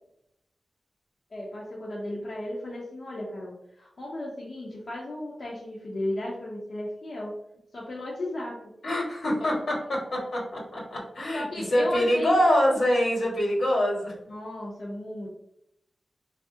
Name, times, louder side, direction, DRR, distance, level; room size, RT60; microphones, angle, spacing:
voice 1, 1.3-7.3 7.7-8.6 9.3-9.5 11.3-12.4 14.3-15.3, left 1 dB, 60° left, -5 dB, 0.7 m, -35 dB
voice 2, 8.8-9.5 9.9-14.1, equal, 85° left, -4 dB, 1.3 m, -25 dB
3.9 x 2.4 x 2.6 m, 0.79 s
wide cardioid pair, 85°, 0 cm